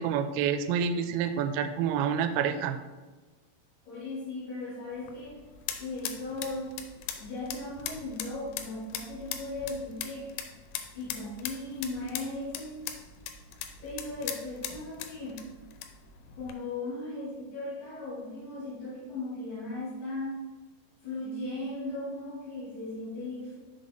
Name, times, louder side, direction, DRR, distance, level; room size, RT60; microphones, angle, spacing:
voice 1, 0.0-2.8, right 7 dB, 85° right, 8 dB, 3.1 m, -28 dB
voice 2, 3.8-5.4 5.8-6.7 7.2-10.3 10.9-12.8 13.8-15.4 16.3-20.4 21.0-23.6, left 2 dB, 55° left, -6 dB, 3.1 m, -37 dB
sound 1, 4.9-16.6, left 9 dB, 80° left, 2.9 m, -41 dB
6.8 x 4.0 x 5.1 m, 1.2 s
omnidirectional pair, 5.7 m